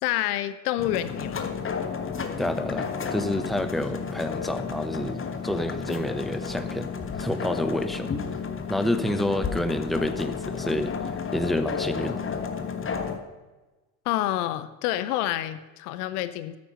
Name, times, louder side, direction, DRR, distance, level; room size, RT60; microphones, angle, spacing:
voice 1, 0.0-1.5 14.0-16.6, left 13 dB, 65° left, 13 dB, 0.9 m, -28 dB
sound 1, 0.8-13.2, left 6 dB, 25° left, 1.5 m, -32 dB
voice 2, 2.4-6.9 7.2-8.1 8.7-10.9 11.3-12.2, left 1 dB, ahead, 9 dB, 1.0 m, -28 dB
13.5 x 9.4 x 5.7 m, 1.2 s
hypercardioid pair, 70°, 48 cm